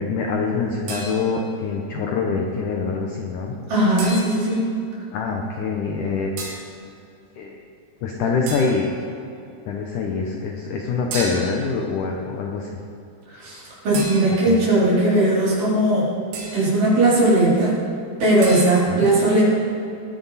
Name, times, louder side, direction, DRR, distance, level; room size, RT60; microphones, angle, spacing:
voice 1, 0.0-3.6 5.1-6.3 7.4-7.6 8.0-8.8 9.7-12.7 14.3-14.6 18.9-19.1, left 4 dB, 70° left, 1 dB, 1.9 m, -25 dB
sound 1, 0.9-1.6 4.0-4.6 6.4-6.8 8.5-9.0 11.1-11.8 13.9-14.7 16.3-16.8 18.4-18.7, right 2 dB, 75° right, 4.2 m, -33 dB
voice 2, 3.7-4.7 13.3-16.1 16.5-17.7 18.2-19.4, right 1 dB, 50° right, -8 dB, 5.5 m, -18 dB
21.0 x 10.0 x 4.2 m, 2.6 s
omnidirectional pair, 4.9 m